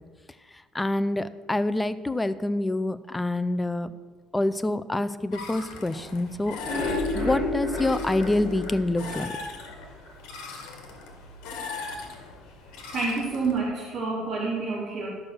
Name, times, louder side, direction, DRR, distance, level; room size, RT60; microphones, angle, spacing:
voice 1, 0.7-3.9 4.3-6.6 7.1-9.3, left 2 dB, 10° left, 13 dB, 0.4 m, -26 dB
sound 1, 5.3-13.6, left 4 dB, 85° left, 1.9 m, -40 dB
sound 2, 6.4-9.7 10.0-10.1 10.5-10.6 11.0-11.1, left 2 dB, 25° left, 3.9 m, -30 dB
voice 2, 12.9-15.1, right 3 dB, 35° right, -10 dB, 3.5 m, -28 dB
12.0 x 6.3 x 6.1 m, 1.4 s
cardioid pair, 160°, 0 cm